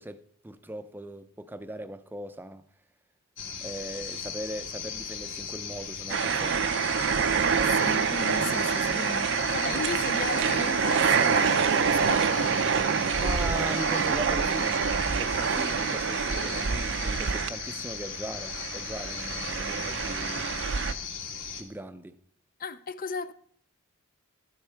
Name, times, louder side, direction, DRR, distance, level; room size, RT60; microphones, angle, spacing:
voice 1, 0.0-2.6 3.6-6.7 13.2-20.7 21.6-22.2, right 1 dB, 10° right, 0.5 m, -39 dB
sound 1, 3.4-21.6, left 7 dB, 65° left, 2.0 m, -38 dB
sound 2, 6.1-18.0 18.3-20.9, right 6 dB, 55° right, 0.5 m, -26 dB
voice 2, 7.6-12.5 22.6-23.3, left 4 dB, 40° left, 0.5 m, -35 dB
12.5 x 10.5 x 4.6 m
head